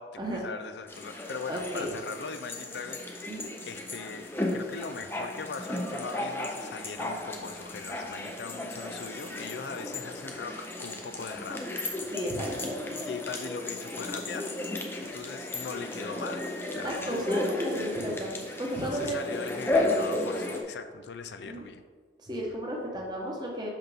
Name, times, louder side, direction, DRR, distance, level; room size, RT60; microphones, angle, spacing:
voice 1, 0.0-12.2 12.8-14.5 15.0-16.5 16.7-17.3 18.8-21.8, left 5 dB, 65° left, 9 dB, 0.4 m, -40 dB
sound 1, 0.9-20.6, left 2 dB, 10° left, 0.6 m, -34 dB
voice 2, 1.5-1.9 3.3-3.5 12.1-12.7 15.1-15.2 16.8-19.2 21.4-21.7 22.2-23.7, right 1 dB, 25° right, -2 dB, 1.0 m, -34 dB
5.9 x 5.8 x 3.5 m, 1.5 s
head